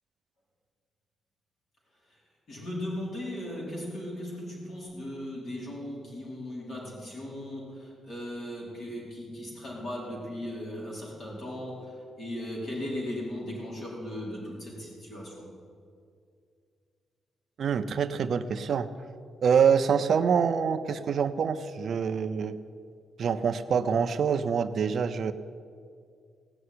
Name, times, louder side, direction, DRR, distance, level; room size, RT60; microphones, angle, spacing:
voice 1, 2.5-11.9 12.2-15.4, left 1 dB, 45° left, -3 dB, 4.5 m, -37 dB
voice 2, 17.6-18.9 19.4-22.6 23.2-25.3, right 6 dB, 50° right, 10 dB, 0.5 m, -25 dB
17.0 x 6.7 x 9.6 m, 2.3 s
wide cardioid pair, 160°, 0 cm